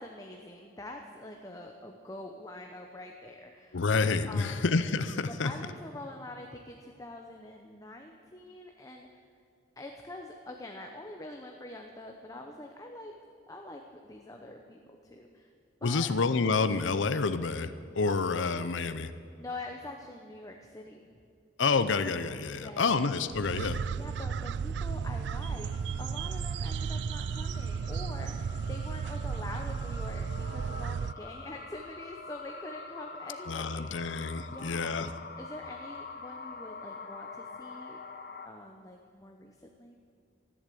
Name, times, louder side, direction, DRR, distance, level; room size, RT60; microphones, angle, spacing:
voice 1, 0.0-3.8 4.3-4.7 5.3-9.2 9.8-13.1 13.5-15.5 15.8-16.1 18.1-18.2 19.4-21.0 22.4-22.9 23.9-25.7 26.0-35.1 35.4-38.0 38.4-40.0, left 1 dB, 20° left, 2 dB, 0.9 m, -45 dB
voice 2, 3.7-5.5 15.8-19.1 21.6-23.8 33.5-35.1, left 4 dB, 80° left, 11 dB, 0.6 m, -28 dB
sound 1, 23.3-31.1, right 6 dB, 65° right, 0.3 m, -34 dB
sound 2, 25.7-38.5, left 4 dB, 50° left, 1.0 m, -46 dB
14.0 x 11.0 x 8.5 m, 2.4 s
head